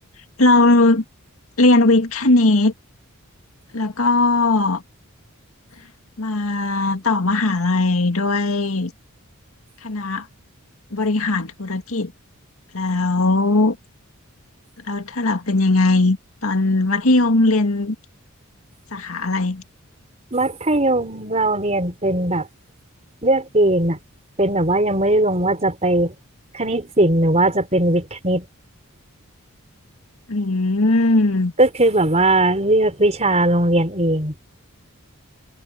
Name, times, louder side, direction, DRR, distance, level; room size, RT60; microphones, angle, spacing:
voice 1, 0.4-1.0 1.6-2.7 3.7-4.8 6.2-8.9 9.8-10.3 10.9-12.1 12.7-13.8 14.9-16.2 16.4-18.0 18.9-19.6 30.3-31.5, left 2 dB, 75° left, 2.0 m, -18 dB
voice 2, 20.3-22.5 23.2-24.0 24.4-26.1 26.5-28.5 31.6-34.3, right 1 dB, 30° right, 4.9 m, -19 dB
head